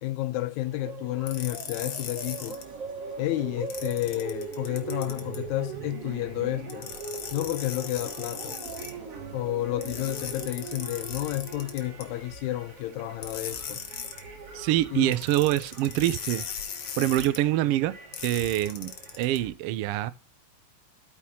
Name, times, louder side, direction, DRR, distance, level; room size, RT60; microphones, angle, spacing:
voice 1, 0.0-2.6 3.2-6.9 7.3-8.6 9.3-13.8 14.9-15.1, left 16 dB, 90° left, 2.0 m, -31 dB
sound 1, 0.6-19.5, right 4 dB, 55° right, 3.2 m, -41 dB
sound 2, 1.3-2.6 3.7-5.4 6.7-8.9 9.8-12.0 13.2-14.2 15.1-17.4 18.1-19.4, left 8 dB, 60° left, 2.0 m, -38 dB
voice 2, 14.5-16.4 17.0-18.0 18.2-18.9 19.2-20.1, right 14 dB, 85° right, 1.3 m, -25 dB
13.0 x 5.4 x 2.8 m
omnidirectional pair, 3.3 m